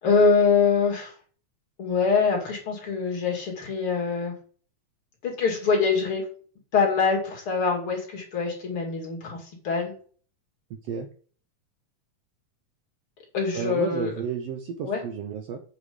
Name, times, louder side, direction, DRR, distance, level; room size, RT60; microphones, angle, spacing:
voice 1, 0.0-1.1 1.8-4.3 5.2-6.2 6.7-9.9 13.3-14.1 14.8-15.0, left 5 dB, 45° left, 0 dB, 3.1 m, -24 dB
voice 2, 13.5-15.6, right 7 dB, 70° right, 6 dB, 1.6 m, -31 dB
8.7 x 5.2 x 5.1 m, 0.44 s
omnidirectional pair, 3.5 m